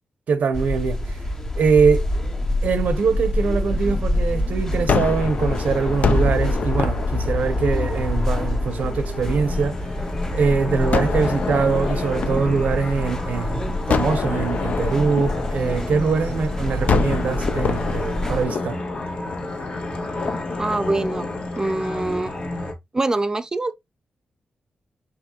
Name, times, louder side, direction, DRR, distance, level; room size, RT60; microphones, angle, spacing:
voice 1, 0.3-1.2 1.6-2.1 2.6-9.9 10.3-18.8, right 5 dB, 75° right, 0.7 m, -23 dB
sound 1, 0.5-18.5, left 1 dB, 20° left, 0.7 m, -26 dB
Gunshot gunfire, 4.9-10.0 10.9-13.3 13.9-16.4 16.9-22.1, left 5 dB, 65° left, 0.5 m, -28 dB
sound 2, 9.2-22.7, left 1 dB, 45° left, 1.2 m, -31 dB
voice 2, 20.6-21.3 21.6-22.3 22.9-23.7, right 2 dB, 25° right, 0.5 m, -24 dB
4.8 x 3.2 x 2.9 m
cardioid pair, 75°, 3 cm